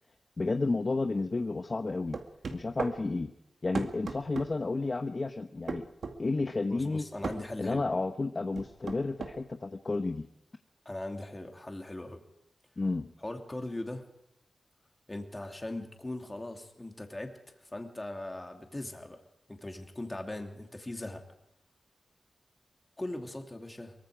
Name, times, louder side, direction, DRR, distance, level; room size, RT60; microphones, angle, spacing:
voice 1, 0.4-2.2 2.5-3.3 3.6-5.8 6.2-7.0 7.6-10.3 12.8-13.1, left 3 dB, 30° left, 7 dB, 0.9 m, -31 dB
sound 1, 2.1-3.0 3.7-4.5 5.7-6.2 7.2-7.4 8.6-9.4, right 4 dB, 65° right, 2.1 m, -35 dB
voice 2, 6.7-7.8 10.8-12.2 13.2-14.0 15.1-19.2 19.5-21.2 23.0-23.9, left 1 dB, 15° left, 3 dB, 2.8 m, -40 dB
24.0 x 23.5 x 5.0 m, 0.81 s
wide cardioid pair, 170°, 0 cm